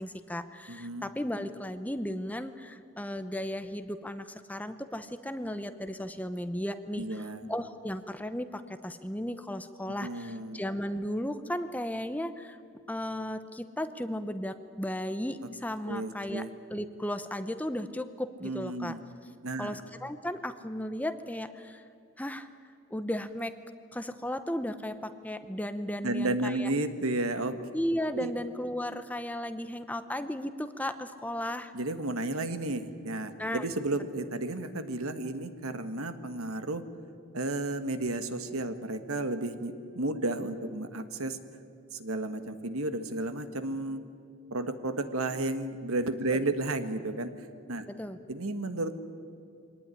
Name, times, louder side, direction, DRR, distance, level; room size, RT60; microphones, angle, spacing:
voice 1, 0.0-12.6 12.9-19.0 19.6-21.8 22.2-22.5 22.9-23.6 23.9-26.7 27.7-31.7 33.4-33.7 47.9-48.2, left 1 dB, 5° left, 10 dB, 0.8 m, -35 dB
voice 2, 0.7-1.1 7.0-7.4 10.0-10.6 15.9-16.5 18.4-19.0 19.4-19.8 26.0-27.6 28.1-28.3 31.7-36.8 37.3-41.4 41.9-44.0 44.5-47.9 48.3-49.0, right 2 dB, 85° right, 9 dB, 1.6 m, -32 dB
24.0 x 19.0 x 10.0 m, 2.6 s
head